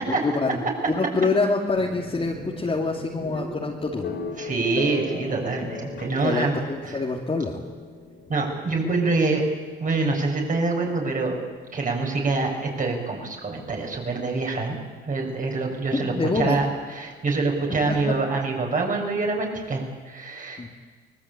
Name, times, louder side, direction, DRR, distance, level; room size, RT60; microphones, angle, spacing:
voice 1, 0.0-4.1 6.2-7.6 15.9-16.6 17.9-18.0 20.6-20.7, left 3 dB, 30° left, -2 dB, 2.9 m, -26 dB
sound 1, 1.8-15.5, left 4 dB, 60° left, 5.3 m, -40 dB
voice 2, 4.4-7.0 8.3-9.4 9.8-11.4 11.7-14.8 15.0-16.7 16.9-20.6, right 3 dB, 40° right, 1 dB, 7.3 m, -25 dB
24.5 x 20.5 x 8.9 m, 1.5 s
cardioid pair, 90°, 20 cm